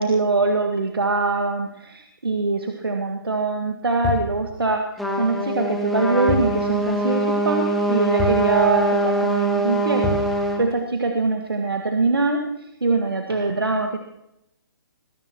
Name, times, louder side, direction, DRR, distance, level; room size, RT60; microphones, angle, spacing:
voice 1, 0.0-4.9 5.2-10.2 10.6-12.5 12.8-14.0, right 3 dB, 85° right, 3 dB, 1.8 m, -23 dB
sound 1, 4.0-4.4 6.3-6.6 6.9-7.0 8.2-8.5 10.0-10.3, left 3 dB, 15° left, 4.5 m, -26 dB
Trumpet, 5.0-10.6, right 1 dB, ahead, 2.1 m, -23 dB
20.0 x 16.5 x 3.0 m, 0.82 s
figure-of-eight pair, 145°, 12 cm